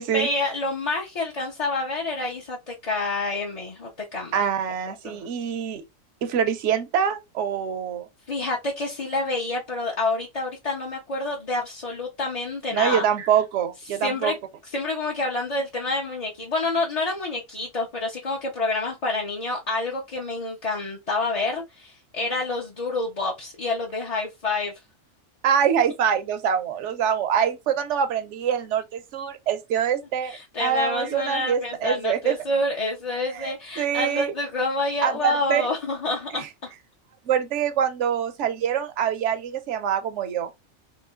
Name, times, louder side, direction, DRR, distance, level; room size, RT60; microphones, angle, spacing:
voice 1, 0.1-4.4 5.0-5.2 8.3-13.0 14.0-14.3 14.7-24.7 30.2-36.7, left 2 dB, 35° left, 0.8 m, -28 dB
voice 2, 4.3-5.9 6.2-8.1 12.7-14.3 25.4-32.4 33.3-34.3 35.0-35.7 36.4-36.5 37.3-40.5, right 8 dB, 65° right, 1.0 m, -25 dB
3.1 x 3.1 x 3.5 m
omnidirectional pair, 1.4 m